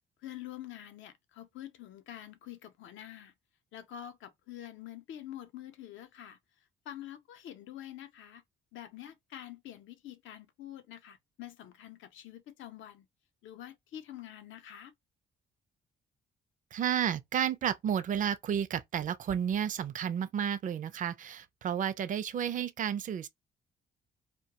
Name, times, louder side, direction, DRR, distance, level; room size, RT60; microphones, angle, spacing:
voice 1, 0.2-3.3 3.7-6.4 6.9-8.4 8.7-13.1 13.4-14.9, left 11 dB, 75° left, 0.5 m, -46 dB
voice 2, 16.7-23.3, right 9 dB, 40° right, 0.4 m, -32 dB
2.3 x 2.1 x 2.7 m
cardioid pair, 90°, 20 cm